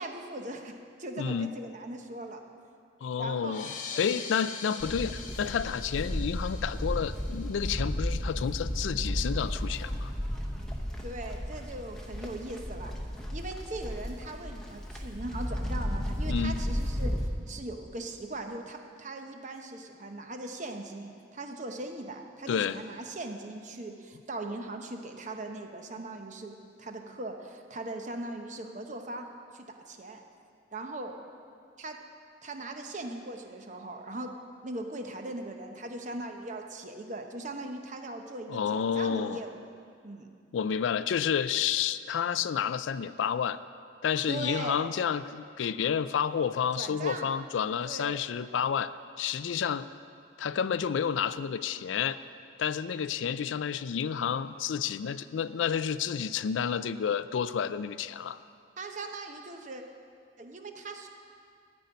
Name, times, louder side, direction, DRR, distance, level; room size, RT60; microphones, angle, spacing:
voice 1, 0.0-2.4 3.2-3.6 11.0-12.9 13.3-17.1 17.5-26.5 26.8-29.3 29.5-30.2 30.7-31.1 31.8-32.0 32.4-34.3 34.6-39.6 40.0-40.3 44.3-44.9 46.8-47.3 47.8-48.3 58.8-59.8 60.4-61.1, right 2 dB, 40° right, 4 dB, 0.9 m, -39 dB
voice 2, 1.2-1.5 3.0-10.1 16.3-16.6 22.5-22.8 38.5-39.4 40.5-43.6 44.0-49.9 50.4-52.2 52.6-58.4, left 7 dB, 85° left, 14 dB, 0.4 m, -30 dB
sound 1, 3.4-8.5, left 5 dB, 45° left, 0.8 m, -43 dB
Livestock farm animals working animals, 4.8-17.3, equal, 5° left, 0.9 m, -34 dB
13.0 x 5.4 x 9.2 m, 2.3 s
head